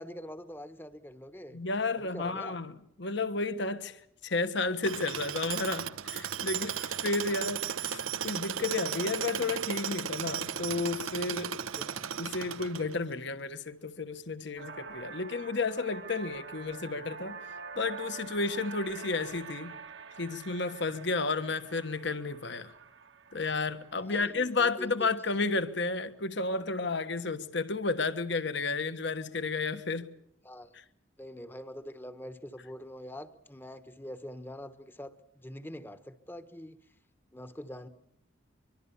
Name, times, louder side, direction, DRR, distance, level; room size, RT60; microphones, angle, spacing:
voice 1, 0.0-1.6 2.0-2.6 11.5-12.1 24.0-25.1 30.4-30.7 31.2-36.8 37.3-37.9, equal, 10° left, 1.1 m, -44 dB
voice 2, 1.5-11.6 12.2-17.4 17.8-19.8 20.2-22.7 23.3-30.1, left 3 dB, 60° left, 1.3 m, -32 dB
Tools, 4.8-13.1, right 8 dB, 85° right, 1.0 m, -35 dB
sound 1, 14.6-26.2, right 5 dB, 60° right, 1.3 m, -47 dB
23.5 x 23.5 x 7.1 m
head